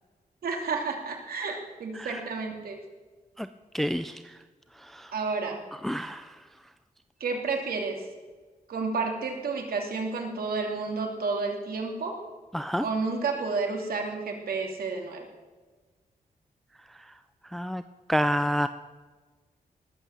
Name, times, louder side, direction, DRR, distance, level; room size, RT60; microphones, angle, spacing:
voice 1, 0.4-2.8 5.1-5.6 7.2-8.0 8.7-12.1 12.8-15.3, right 4 dB, 90° right, 2 dB, 2.7 m, -31 dB
voice 2, 3.7-4.3 4.9-5.1 5.8-6.3 12.5-12.8 17.5-17.8 18.1-18.7, equal, ahead, 11 dB, 0.4 m, -28 dB
19.0 x 8.1 x 7.4 m, 1.3 s
wide cardioid pair, 140°, 15 cm